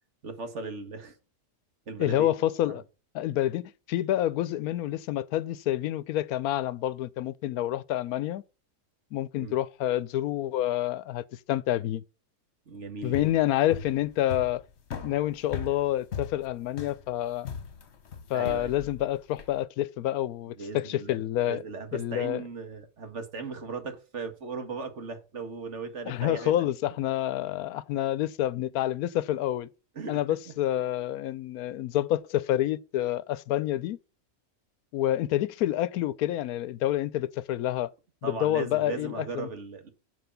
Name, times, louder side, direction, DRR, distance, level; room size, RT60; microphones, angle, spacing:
voice 1, 0.2-1.1 1.9-2.3 2.7-2.8 9.3-9.5 12.7-13.3 18.3-18.7 20.6-21.2 21.5-26.5 29.9-30.2 38.2-39.9, right 4 dB, 55° right, 1.7 m, -37 dB
voice 2, 2.0-2.8 3.1-3.6 3.9-8.4 9.1-12.0 13.0-14.6 15.0-17.5 18.3-21.6 21.9-22.4 26.1-29.7 30.1-34.0 34.9-37.9 38.2-39.5, left 13 dB, 80° left, 1.1 m, -28 dB
sound 1, 13.0-19.6, left 6 dB, 50° left, 1.2 m, -39 dB
7.9 x 4.9 x 6.8 m
omnidirectional pair, 1.5 m